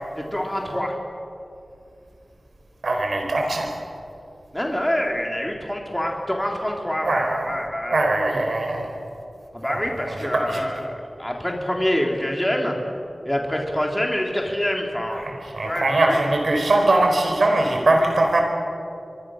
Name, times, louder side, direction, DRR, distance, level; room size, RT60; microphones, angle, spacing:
voice 1, 0.2-1.0 4.5-8.1 9.5-12.8 13.3-15.3 15.6-16.4, equal, 15° left, 1 dB, 3.5 m, -26 dB
voice 2, 2.8-3.8 7.0-7.6 7.9-8.9 9.7-10.6 15.1-18.4, right 2 dB, 80° right, 3 dB, 4.6 m, -21 dB
26.5 x 23.5 x 6.5 m, 2.6 s
wide cardioid pair, 45°, 0 cm